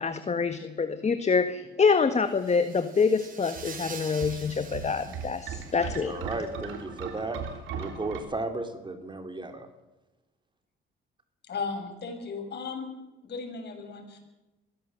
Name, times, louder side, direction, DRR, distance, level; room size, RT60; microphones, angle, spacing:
voice 1, 0.0-6.1, left 5 dB, 35° left, 9 dB, 1.6 m, -26 dB
sound 1, 2.3-6.1, right 5 dB, 45° right, 4.2 m, -45 dB
sound 2, 3.6-8.2, right 7 dB, 90° right, 3.5 m, -38 dB
voice 2, 6.0-7.4 7.8-9.7, right 2 dB, 25° right, 7 dB, 3.4 m, -34 dB
voice 3, 11.5-12.9 13.2-14.2, left 4 dB, 55° left, 4 dB, 6.7 m, -36 dB
23.0 x 16.5 x 7.7 m, 1.0 s
cardioid pair, 90°, 20 cm